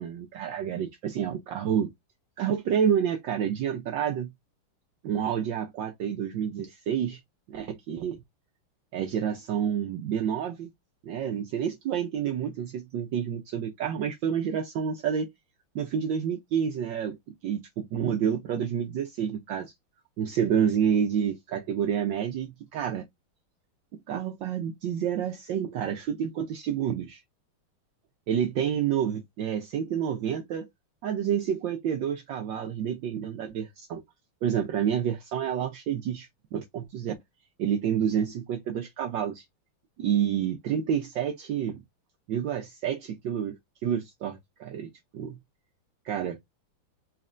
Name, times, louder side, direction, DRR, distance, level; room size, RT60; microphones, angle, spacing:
voice 1, 0.0-1.9 2.4-4.3 5.0-7.2 7.5-8.2 8.9-10.7 11.0-15.3 15.7-17.2 17.4-19.7 20.2-23.0 24.1-27.2 28.3-30.7 31.0-34.0 34.4-37.1 37.6-39.4 40.0-41.8 42.3-45.4 46.0-46.4, right 8 dB, 70° right, 1.2 m, -29 dB
4.3 x 3.3 x 2.5 m
omnidirectional pair, 2.4 m